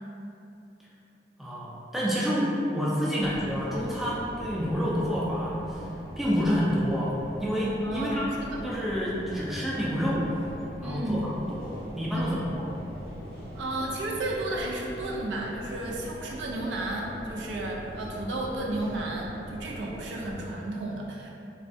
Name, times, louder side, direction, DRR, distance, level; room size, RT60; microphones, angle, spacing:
voice 1, 1.4-7.1 7.4-8.3 8.6-10.4 10.8-12.7, equal, ahead, -7 dB, 0.4 m, -28 dB
sound 1, 3.2-20.5, equal, 55° right, 1.2 m, -42 dB
voice 2, 7.8-8.6 10.8-11.2 12.1-12.4 13.5-21.3, right 2 dB, 90° right, -2 dB, 0.4 m, -33 dB
3.2 x 2.4 x 2.6 m, 2.7 s
head